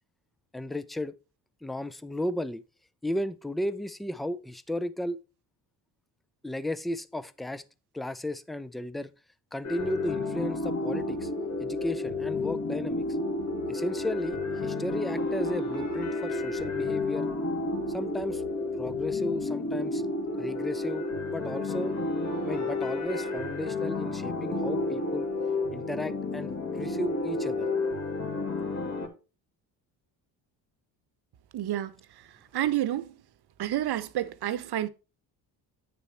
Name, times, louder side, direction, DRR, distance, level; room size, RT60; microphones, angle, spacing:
voice 1, 0.5-1.1 1.6-2.6 3.0-5.2 6.4-7.6 7.9-9.1 9.5-11.3 11.6-13.0 13.7-17.3 17.9-18.4 18.8-20.1 20.4-21.9 22.4-25.3 25.7-27.7, left 1 dB, ahead, 0.4 m, -34 dB
sound 1, 9.6-29.1, left 2 dB, 35° left, 2.1 m, -31 dB
sound 2, 9.8-19.4, left 4 dB, 70° left, 2.1 m, -54 dB
voice 2, 31.5-31.9 32.5-33.1 33.6-34.9, right 12 dB, 55° right, 1.0 m, -29 dB
9.2 x 6.8 x 2.9 m
supercardioid pair, 65°, 47 cm